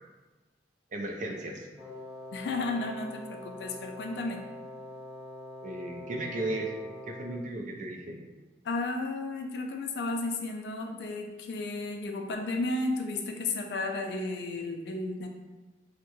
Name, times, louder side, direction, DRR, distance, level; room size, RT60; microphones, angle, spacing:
voice 1, 0.9-1.7 5.6-6.7 7.1-8.2, right 2 dB, 45° right, 2 dB, 0.4 m, -35 dB
Wind instrument woodwind instrument, 1.8-7.5, left 2 dB, 10° right, 0.7 m, -44 dB
voice 2, 2.3-4.4 8.6-15.3, left 2 dB, 65° left, 3 dB, 0.4 m, -33 dB
3.5 x 2.1 x 2.9 m, 1.1 s
head